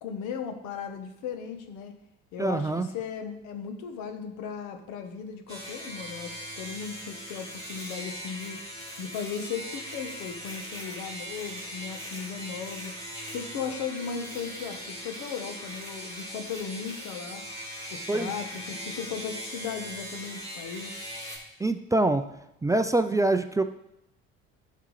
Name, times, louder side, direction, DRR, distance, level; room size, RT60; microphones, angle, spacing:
voice 1, 0.0-2.0 2.3-8.6 9.0-12.9 13.3-17.4 17.9-20.9, left 6 dB, 75° left, 7 dB, 1.1 m, -36 dB
voice 2, 2.4-2.9 18.1-18.3 21.6-22.2 22.6-23.6, right 2 dB, 10° right, 8 dB, 0.4 m, -24 dB
sound 1, 5.5-21.4, equal, 20° left, 3.0 m, -40 dB
11.0 x 5.7 x 3.2 m, 0.84 s
hypercardioid pair, 70°, 31 cm